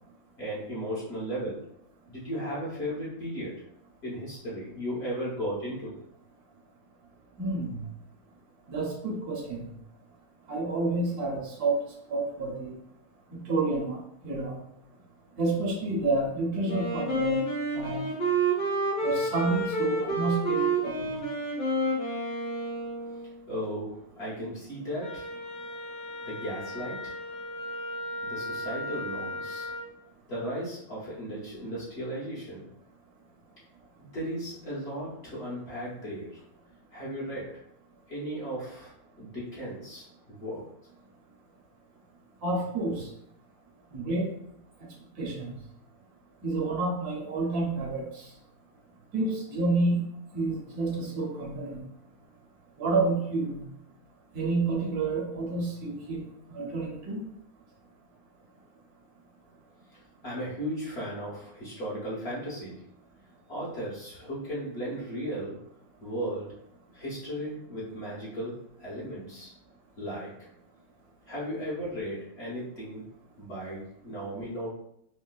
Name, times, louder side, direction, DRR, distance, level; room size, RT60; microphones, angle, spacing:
voice 1, 0.4-1.7 2.1-3.5 4.0-5.9 23.5-25.3 26.2-27.1 28.2-29.7 30.3-32.7 34.0-36.4 36.9-37.5 38.1-38.9 39.2-40.6 60.2-62.8 63.5-65.6 66.0-66.6 66.9-69.5 70.0-70.3 71.3-73.0 73.4-74.7, equal, 45° left, -7 dB, 1.1 m, -36 dB
voice 2, 7.4-7.8 8.7-9.7 10.5-11.8 12.1-12.7 13.5-14.0 14.2-14.5 15.4-17.3 17.7-18.0 19.0-21.0 42.4-43.1 43.9-44.3 45.2-45.5 46.4-48.0 49.1-50.0 50.3-51.8 52.8-53.6 54.3-56.2 56.5-57.2, right 3 dB, 70° right, -2 dB, 1.2 m, -29 dB
Wind instrument woodwind instrument, 16.7-23.4, right 2 dB, 85° left, 1.6 m, -29 dB
Wind instrument woodwind instrument 2, 25.0-29.9, left 1 dB, 70° left, 1.8 m, -37 dB
4.4 x 2.1 x 2.3 m, 0.74 s
omnidirectional pair, 1.8 m